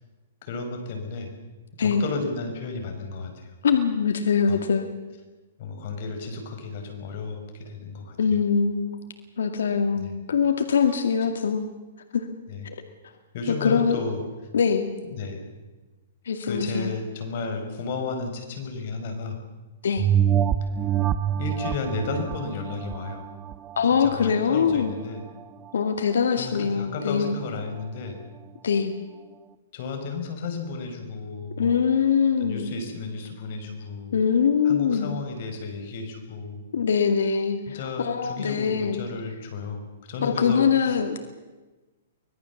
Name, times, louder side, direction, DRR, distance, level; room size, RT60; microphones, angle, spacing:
voice 1, 0.4-1.3 1.8-3.5 4.5-4.6 5.6-8.4 10.0-10.2 12.5-12.7 13.3-14.2 15.1-15.4 16.4-19.4 20.6-20.7 21.4-23.3 24.0-25.2 26.4-28.2 29.7-31.8 32.4-34.2 34.6-36.6 37.7-41.0, left 4 dB, 50° left, 5 dB, 5.1 m, -33 dB
voice 2, 3.6-4.9 8.2-9.0 9.4-11.7 12.1-12.3 12.6-12.7 13.6-14.0 14.5-14.9 16.3-16.9 19.8-20.1 23.8-24.9 25.7-27.3 28.6-28.9 31.6-32.7 34.1-35.1 36.7-37.6 38.0-39.0 40.2-41.2, left 6 dB, 85° left, 6 dB, 2.0 m, -23 dB
sound 1, 20.0-24.9 25.4-25.5, right 9 dB, 20° right, 0.7 m, -26 dB
24.5 x 18.5 x 7.2 m, 1.2 s
hypercardioid pair, 155°, 0 cm